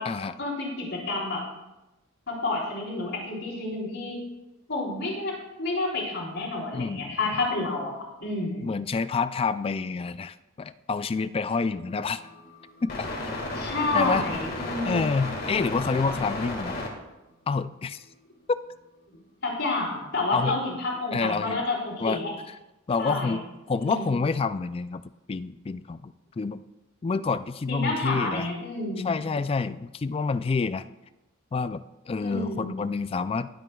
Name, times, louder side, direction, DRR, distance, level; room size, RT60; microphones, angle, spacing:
voice 1, 0.4-1.4 2.3-4.2 4.7-5.3 5.6-7.9 8.2-8.6 13.5-15.1 19.4-22.3 23.0-23.4 23.8-24.1 27.7-29.1 32.2-32.7, left 2 dB, 70° left, -9 dB, 3.9 m, -29 dB
voice 2, 6.7-7.3 8.6-12.3 12.8-13.1 13.9-14.2 14.8-16.8 17.5-18.0 20.3-20.6 21.1-21.6 22.0-22.2 22.9-25.0 25.3-26.6 27.0-28.5 29.0-30.9 31.5-33.5, left 4 dB, 30° left, 14 dB, 0.3 m, -28 dB
sound 1, 11.9-16.9, left 2 dB, 50° left, 1.9 m, -34 dB
22.5 x 7.9 x 2.3 m, 1.0 s
head